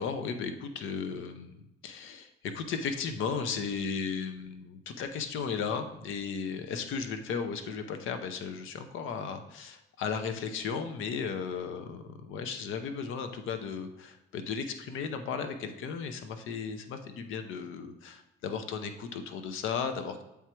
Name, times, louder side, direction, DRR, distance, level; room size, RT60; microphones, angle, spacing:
voice 1, 0.0-20.2, left 6 dB, 85° left, 8 dB, 0.7 m, -35 dB
7.3 x 3.5 x 4.4 m, 0.90 s
cardioid pair, 90°, 20 cm